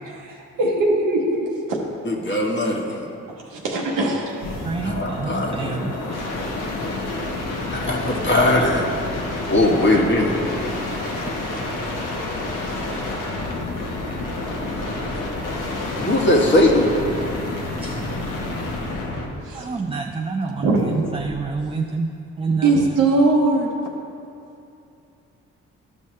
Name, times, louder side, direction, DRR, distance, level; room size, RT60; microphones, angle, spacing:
voice 1, 0.0-1.8 2.3-2.4 3.4-4.2 11.1-11.2 19.4-19.7 20.6-20.9 22.6-23.7, right 2 dB, 85° right, -3 dB, 0.9 m, -21 dB
voice 2, 2.0-3.0 4.8-5.8 7.7-8.8 9.5-10.4 16.0-16.9, left 1 dB, 35° left, -1 dB, 1.3 m, -19 dB
sound 1, 4.3-19.4 21.1-21.6, left 2 dB, 75° left, 1.2 m, -29 dB
voice 3, 4.6-6.0 12.9-13.1 17.8-18.1 19.5-22.1 22.4-23.0, right 4 dB, 15° right, 3 dB, 0.4 m, -27 dB
12.0 x 5.3 x 3.2 m, 2.6 s
supercardioid pair, 55°, 32 cm